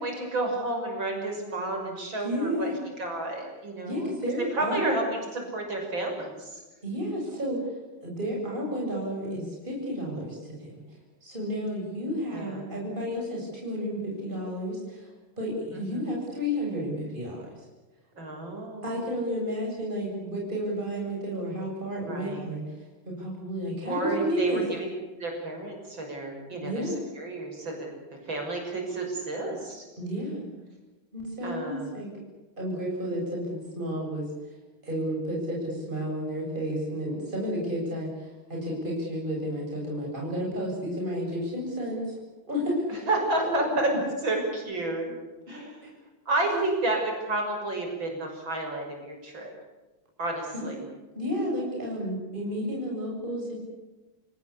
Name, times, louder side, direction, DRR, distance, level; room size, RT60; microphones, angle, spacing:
voice 1, 0.0-4.1 4.5-6.6 12.3-12.7 15.7-16.1 18.2-19.0 22.0-22.5 23.9-24.9 25.2-27.9 28.3-29.9 31.4-32.0 42.9-43.9 44.2-45.1 45.5-45.8 46.3-49.5 50.2-50.8, right 2 dB, 65° right, 2 dB, 6.9 m, -31 dB
voice 2, 2.2-2.8 3.8-4.8 6.8-7.6 8.0-10.8 11.2-15.1 15.4-17.5 18.8-24.6 26.6-27.0 30.0-30.5 31.1-32.1 32.6-34.3 34.8-42.1 42.5-42.8 43.4-43.5 45.0-45.1 45.8-45.9 46.5-46.8 50.5-50.7 51.1-53.6, equal, 20° right, -2 dB, 7.8 m, -31 dB
29.0 x 18.5 x 8.5 m, 1.2 s
omnidirectional pair, 2.3 m